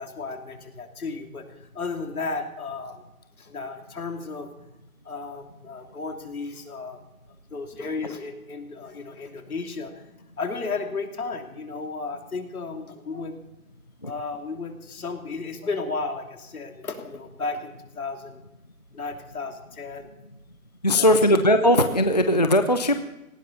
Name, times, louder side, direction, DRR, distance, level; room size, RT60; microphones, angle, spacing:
voice 1, 0.0-1.5 1.7-3.0 3.4-4.5 5.0-7.0 7.5-9.9 10.4-13.3 14.0-18.4 18.9-20.1 20.9-21.4, left 4 dB, 75° left, 4 dB, 3.0 m, -34 dB
voice 2, 20.8-22.9, left 1 dB, 30° left, 8 dB, 0.4 m, -19 dB
18.5 x 17.5 x 4.1 m, 0.98 s
hypercardioid pair, 165°, 44 cm